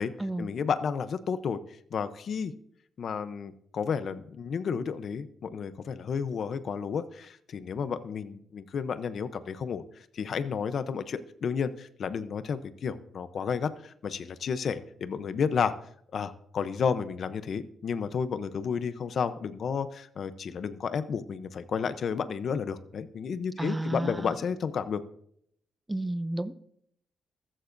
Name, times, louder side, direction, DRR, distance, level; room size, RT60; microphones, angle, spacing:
voice 1, 0.4-1.6 1.9-2.5 3.0-9.8 10.1-15.7 16.1-25.0, left 6 dB, 55° left, 12 dB, 0.7 m, -32 dB
voice 2, 23.6-24.3 25.9-26.5, right 1 dB, 10° right, 14 dB, 0.5 m, -31 dB
14.0 x 14.0 x 2.6 m, 0.68 s
cardioid pair, 130°, 0 cm